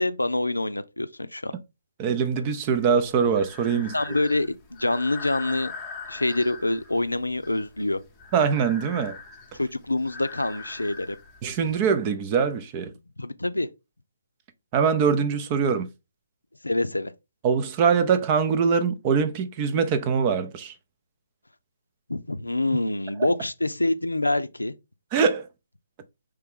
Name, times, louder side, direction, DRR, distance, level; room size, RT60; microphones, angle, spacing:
voice 1, 0.0-1.5 3.7-5.7 6.1-8.0 9.5-11.2 13.2-13.7 16.6-17.1 22.1-24.7, left 2 dB, 90° left, 0.4 m, -26 dB
voice 2, 2.0-3.9 8.3-9.2 11.4-12.9 14.7-15.9 17.4-20.7 25.1-25.5, right 6 dB, 25° right, 0.5 m, -23 dB
Breathing, 2.8-11.8, left 4 dB, 15° left, 0.8 m, -42 dB
4.6 x 3.3 x 3.5 m
figure-of-eight pair, 140°, 0 cm